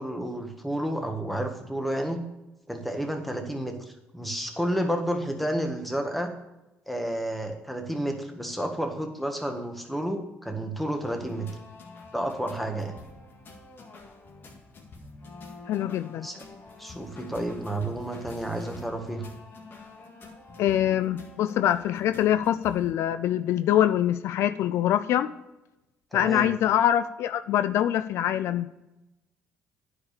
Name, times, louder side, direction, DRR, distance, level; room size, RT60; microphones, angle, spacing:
voice 1, 0.0-2.2 2.7-6.3 6.9-11.5 12.1-12.9 16.2-16.4 16.8-19.2 26.1-26.5, right 1 dB, ahead, 4 dB, 1.6 m, -31 dB
sound 1, 11.0-22.9, left 3 dB, 50° left, 1.8 m, -47 dB
voice 2, 15.7-16.3 20.6-25.3 26.1-28.7, left 11 dB, 70° left, 12 dB, 0.4 m, -24 dB
9.7 x 4.9 x 6.6 m, 0.97 s
supercardioid pair, 75°, 5 cm